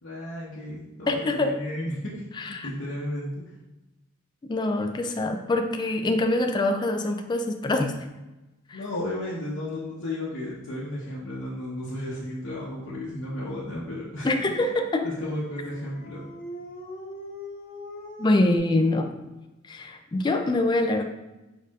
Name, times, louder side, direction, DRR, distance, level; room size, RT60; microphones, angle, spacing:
voice 1, 0.0-2.2 2.6-3.4 8.7-14.3 15.0-16.2, left 1 dB, 70° left, -7 dB, 0.9 m, -33 dB
voice 2, 1.1-1.5 2.4-2.7 4.4-7.9 8.7-8.8 14.2-15.1 18.2-19.1 19.7-21.0, left 2 dB, 20° left, 5 dB, 0.3 m, -24 dB
Dog, 15.1-18.6, left 1 dB, 45° left, 1.1 m, -41 dB
4.9 x 4.4 x 2.4 m, 1.0 s
head